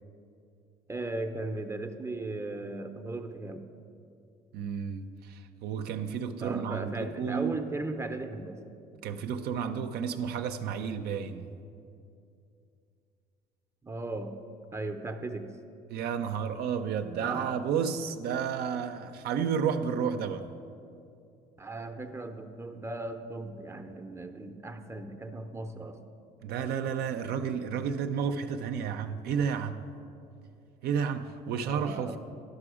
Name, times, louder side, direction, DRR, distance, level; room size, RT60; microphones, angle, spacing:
voice 1, 0.9-3.6 6.3-8.6 13.8-14.4 14.7-15.5 17.2-17.4 21.6-26.0 31.5-32.2, right 2 dB, 15° right, 0.5 m, -37 dB
voice 2, 4.5-7.6 9.0-11.6 15.9-20.5 26.4-29.8 30.8-32.2, right 7 dB, 70° right, 0.5 m, -31 dB
11.5 x 6.0 x 4.9 m
cardioid pair, 110°, 17 cm